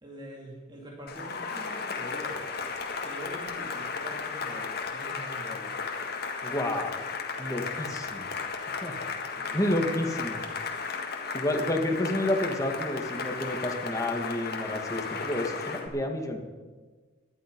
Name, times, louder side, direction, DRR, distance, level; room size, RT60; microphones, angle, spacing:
voice 1, 0.0-2.4 3.0-5.8 9.3-9.7, equal, 25° right, -1 dB, 2.4 m, -44 dB
Cheering / Applause, 1.1-15.9, left 5 dB, 60° left, 1.8 m, -35 dB
voice 2, 6.4-7.0 7.4-8.3 8.8-8.9 9.5-10.4 11.3-16.4, left 1 dB, 20° left, 2 dB, 1.9 m, -30 dB
18.0 x 11.5 x 5.3 m, 1.4 s
head